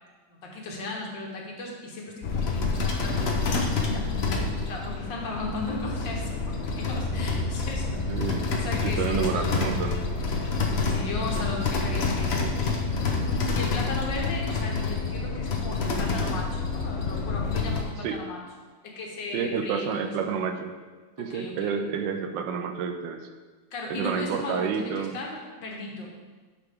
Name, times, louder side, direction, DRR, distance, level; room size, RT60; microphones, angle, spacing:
voice 1, 0.3-4.3 4.7-8.2 8.5-9.6 10.9-12.8 13.5-18.4 18.8-20.1 21.2-21.7 23.7-26.1, left 2 dB, 70° left, -1 dB, 1.9 m, -36 dB
sound 1, 2.2-17.8, left 4 dB, 45° left, 0.8 m, -28 dB
voice 2, 8.1-8.5 8.8-10.0 18.0-18.2 19.3-20.7 21.2-23.3 23.9-25.2, right 6 dB, 80° right, 7 dB, 1.3 m, -29 dB
9.8 x 5.7 x 3.6 m, 1.4 s
omnidirectional pair, 2.1 m